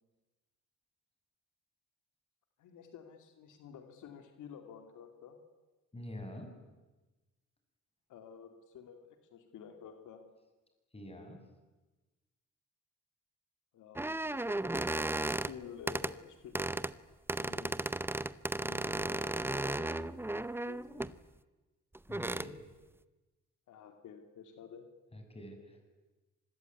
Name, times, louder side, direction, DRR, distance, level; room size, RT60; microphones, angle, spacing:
voice 1, 2.6-5.4 8.1-10.2 13.7-14.7 15.0-16.7 17.4-17.9 18.6-21.1 23.7-24.9, left 8 dB, 80° left, 6 dB, 2.5 m, -51 dB
voice 2, 5.9-6.5 10.9-11.4 22.1-22.6 25.1-25.8, left 1 dB, 20° left, 4 dB, 6.9 m, -46 dB
sound 1, 14.0-15.5 15.9-16.1 16.5-16.9 17.3-21.1 21.9-22.5, right 2 dB, 5° right, 0.8 m, -35 dB
25.5 x 21.0 x 9.4 m, 1.2 s
cardioid pair, 90°, 30 cm